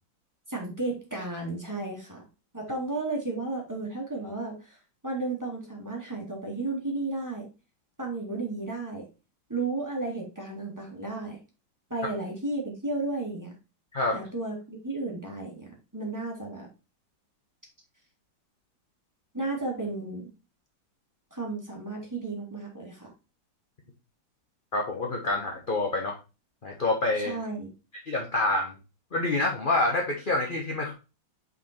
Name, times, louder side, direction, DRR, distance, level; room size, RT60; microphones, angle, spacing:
voice 1, 0.5-2.2 2.5-4.8 5.0-7.5 8.0-9.1 9.5-11.4 11.9-13.5 14.1-16.7 19.3-20.3 21.3-23.1 27.2-27.7, right 2 dB, 10° right, -2 dB, 2.3 m, -33 dB
voice 2, 24.7-26.2 26.6-27.3 28.1-28.7 29.1-30.9, left 2 dB, 30° left, 0 dB, 1.1 m, -27 dB
5.7 x 5.3 x 4.4 m, 0.30 s
omnidirectional pair, 2.1 m